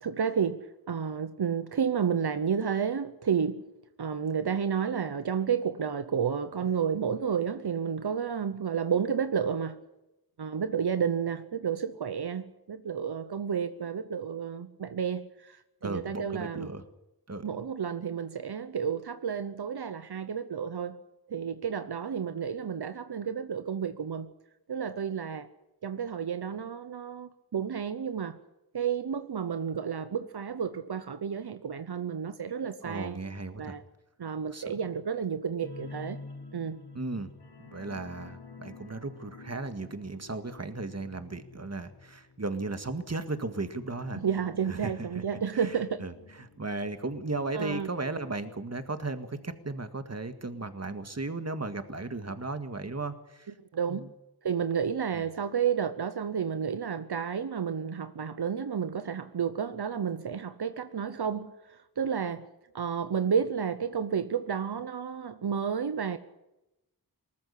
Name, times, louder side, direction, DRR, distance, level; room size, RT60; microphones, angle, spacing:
voice 1, 0.0-3.6 4.0-9.8 10.4-15.6 15.8-16.7 17.4-21.0 21.3-24.3 24.7-25.5 25.8-28.4 28.7-33.2 33.6-33.8 34.2-36.2 36.5-36.8 44.1-46.0 47.5-47.9 53.7-54.1 54.4-61.5 62.0-62.4 62.7-66.2, right 7 dB, 85° right, 0.9 m, -31 dB
voice 2, 15.8-16.8 17.3-17.4 32.8-33.8 34.5-34.7 36.9-37.3 37.6-44.2 44.7-45.2 45.5-46.1 46.4-53.5 53.9-54.1 55.1-55.2, right 3 dB, 40° right, 1.9 m, -36 dB
sound 1, 35.6-48.9 49.2-49.4 49.7-49.8, left 3 dB, 85° left, 1.9 m, -49 dB
19.5 x 14.0 x 9.9 m
wide cardioid pair, 55°, 38 cm